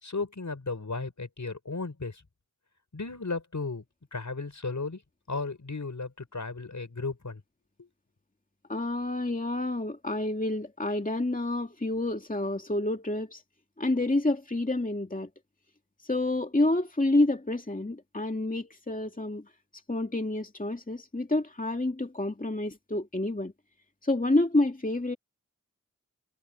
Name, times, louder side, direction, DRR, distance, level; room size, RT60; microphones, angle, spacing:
voice 1, 0.0-2.2 2.9-3.8 4.1-5.0 5.3-7.4 7.8-7.9, left 3 dB, 75° left, 5.8 m, -35 dB
voice 2, 8.7-13.4 13.8-15.3 16.1-19.4 19.9-23.5 24.0-25.2, left 2 dB, 30° left, 2.4 m, -28 dB
wide cardioid pair, 45°, 30 cm